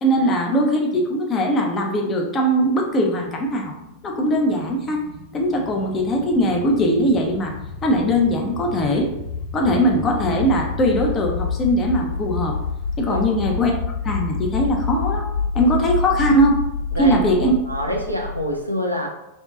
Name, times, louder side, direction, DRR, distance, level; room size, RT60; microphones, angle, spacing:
voice 1, 0.0-3.7 4.0-5.0 5.3-7.5 7.8-9.1 9.5-12.6 13.0-13.7 14.0-15.3 15.5-16.6 17.0-17.5, equal, 25° left, 1 dB, 0.5 m, -20 dB
sound 1, 2.7-18.6, left 4 dB, 55° left, 0.9 m, -29 dB
voice 2, 17.7-19.1, left 1 dB, 85° right, 1 dB, 0.4 m, -25 dB
2.6 x 2.2 x 2.3 m, 0.91 s
figure-of-eight pair, 90°, 0 cm